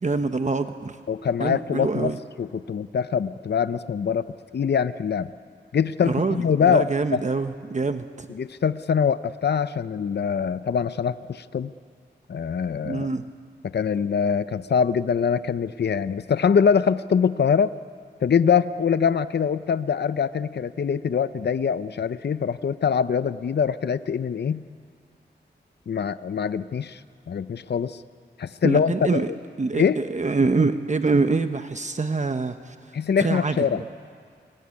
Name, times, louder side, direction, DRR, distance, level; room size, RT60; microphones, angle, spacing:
voice 1, 0.0-1.0 1.4-2.2 6.0-8.3 12.8-13.2 28.6-29.3 29.6-32.8 33.2-33.7, right 3 dB, 40° right, 8 dB, 1.0 m, -25 dB
voice 2, 1.1-2.1 2.4-5.3 5.7-7.2 8.3-11.7 12.3-13.1 13.7-17.7 18.2-24.6 25.9-27.0 27.3-28.0 28.4-29.4 29.7-30.0 32.9-33.8, left 7 dB, 65° left, 14 dB, 0.6 m, -23 dB
29.0 x 20.0 x 9.7 m, 2.1 s
wide cardioid pair, 75°, 19 cm